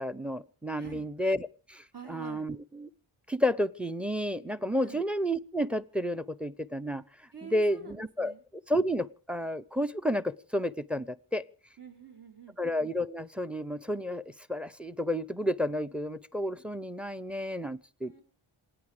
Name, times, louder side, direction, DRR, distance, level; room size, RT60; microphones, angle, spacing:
voice 1, 0.0-2.9 3.3-7.0 7.4-8.3 8.7-11.4 12.6-14.2 14.5-18.2, equal, ahead, 18 dB, 0.8 m, -31 dB
voice 2, 0.7-1.1 1.9-2.5 4.8-5.0 7.3-8.4 11.8-12.6 18.0-18.2, right 5 dB, 50° right, 2 dB, 5.8 m, -47 dB
27.0 x 9.8 x 5.0 m, 0.39 s
wide cardioid pair, 75°, 50 cm